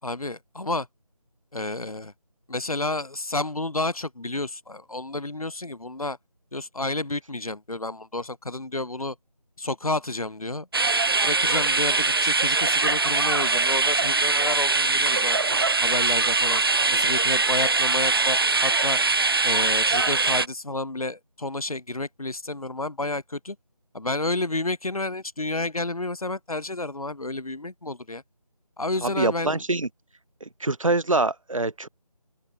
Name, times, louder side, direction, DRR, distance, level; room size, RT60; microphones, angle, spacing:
voice 1, 0.0-0.9 1.5-2.1 2.5-6.2 6.5-9.2 9.6-10.7 11.1-15.5 15.8-16.6 16.9-19.0 19.4-23.6 23.9-28.2 28.8-29.6, left 2 dB, 65° left, 5.6 m, -30 dB
sound 1, 10.7-20.5, right 3 dB, 35° right, 1.9 m, -22 dB
voice 2, 29.0-29.9 30.4-31.9, right 2 dB, 55° right, 7.2 m, -25 dB
open air
figure-of-eight pair, 165°, 20 cm